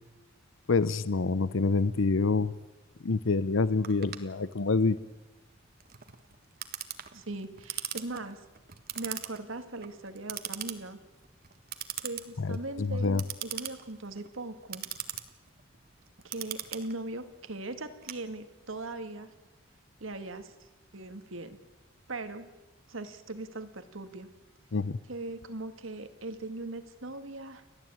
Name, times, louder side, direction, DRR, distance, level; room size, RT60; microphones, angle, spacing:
voice 1, 0.7-2.5 3.0-5.0 12.4-13.2 24.7-25.0, left 3 dB, 70° left, 16 dB, 0.7 m, -27 dB
Clock, 3.8-18.8, right 11 dB, 50° right, 1.5 m, -41 dB
voice 2, 7.1-8.4 8.9-11.0 12.0-14.9 16.2-19.3 20.0-20.5 20.9-21.6 22.1-22.5 22.9-24.3 25.1-27.6, right 2 dB, 75° right, 9 dB, 2.0 m, -39 dB
30.0 x 12.5 x 8.8 m, 1.1 s
head